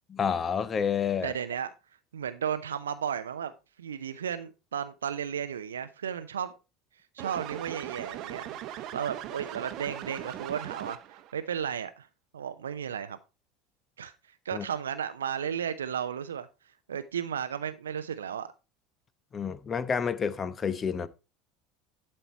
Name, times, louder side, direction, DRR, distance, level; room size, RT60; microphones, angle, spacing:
voice 1, 0.1-1.3 14.5-14.7 19.3-21.1, left 6 dB, 30° left, 0.9 m, -29 dB
voice 2, 1.2-1.7 2.1-3.5 3.8-6.5 7.1-12.1 12.3-13.2 14.0-14.1 14.4-16.5 16.9-18.5, right 8 dB, 75° right, 0.5 m, -34 dB
sound 1, 7.2-11.3, right 12 dB, 45° right, 0.9 m, -39 dB
12.0 x 4.4 x 4.4 m
figure-of-eight pair, 70°, 0 cm